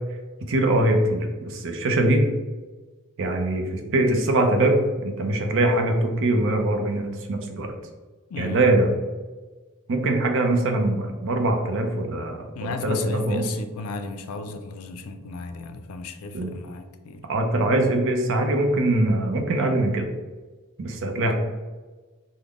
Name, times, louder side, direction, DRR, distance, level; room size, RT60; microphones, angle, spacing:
voice 1, 0.5-2.3 3.2-7.7 8.4-8.9 9.9-13.4 16.3-16.5 17.2-20.1 20.8-21.3, right 1 dB, 60° right, 4 dB, 0.6 m, -22 dB
voice 2, 8.3-8.6 12.6-17.3 21.2-21.3, left 4 dB, 70° left, 8 dB, 0.4 m, -34 dB
3.6 x 2.1 x 3.5 m, 1.3 s
head